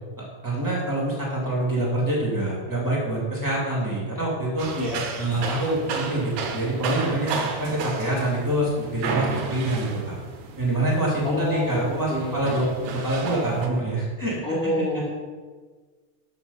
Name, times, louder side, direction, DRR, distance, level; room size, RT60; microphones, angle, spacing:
voice 1, 0.2-4.7 5.2-10.1 10.6-14.4, right 1 dB, 15° right, -4 dB, 0.7 m, -26 dB
sound 1, 4.6-13.7, right 5 dB, 85° right, 1.6 m, -33 dB
voice 2, 11.2-12.4 14.4-15.1, equal, 70° left, -6 dB, 0.8 m, -27 dB
12.0 x 4.7 x 5.5 m, 1.5 s
omnidirectional pair, 4.7 m